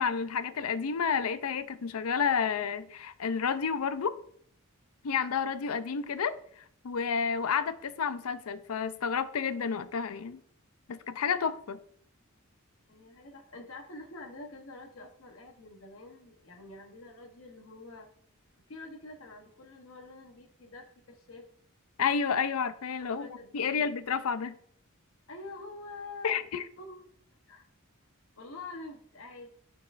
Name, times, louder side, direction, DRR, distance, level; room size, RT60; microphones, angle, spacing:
voice 1, 0.0-4.2 5.0-10.4 10.9-11.8 22.0-23.3 23.5-24.5 26.2-26.6, left 6 dB, 90° left, 0.5 m, -30 dB
voice 2, 12.9-18.1 18.7-21.4 23.0-23.9 25.3-26.3 26.8-27.0 27.5-27.6 28.4-29.5, left 2 dB, 65° left, 1.0 m, -46 dB
12.5 x 4.6 x 2.5 m
head